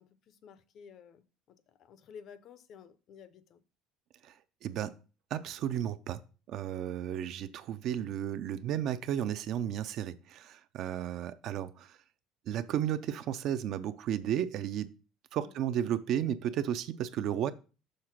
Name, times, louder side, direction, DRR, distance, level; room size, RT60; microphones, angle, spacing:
voice 1, 0.0-3.6 15.4-15.5, left 7 dB, 35° left, 0.5 m, -53 dB
voice 2, 4.6-5.0 5.3-6.2 6.5-12.0 12.5-14.9 15.3-17.5, right 10 dB, 45° right, 0.4 m, -33 dB
6.5 x 3.8 x 5.8 m
cardioid pair, 180°, 0 cm